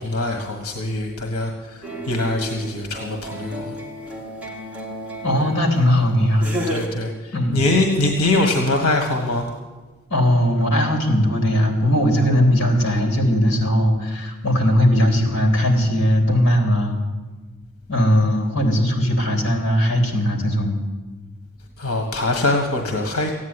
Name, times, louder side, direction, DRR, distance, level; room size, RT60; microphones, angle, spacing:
voice 1, 0.0-3.8 6.7-9.5 21.8-23.3, left 2 dB, 90° left, 3 dB, 1.6 m, -23 dB
sound 1, 1.8-5.9 6.4-6.9, equal, 5° right, 2.2 m, -32 dB
voice 2, 5.2-6.5 7.3-7.6 10.1-17.0 17.9-20.8, equal, 60° left, 3 dB, 3.4 m, -19 dB
15.0 x 9.6 x 9.8 m, 1.3 s
head